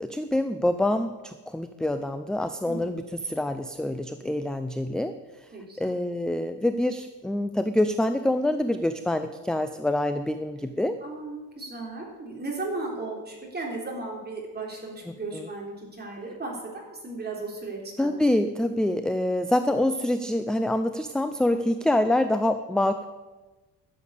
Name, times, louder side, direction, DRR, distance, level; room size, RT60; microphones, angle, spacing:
voice 1, 0.0-5.1 5.8-11.0 15.1-15.4 18.0-23.1, left 1 dB, ahead, 9 dB, 0.4 m, -26 dB
voice 2, 5.5-5.9 11.0-18.1, right 3 dB, 25° right, -1 dB, 3.7 m, -35 dB
12.5 x 7.3 x 8.3 m, 1.2 s
cardioid pair, 125°, 39 cm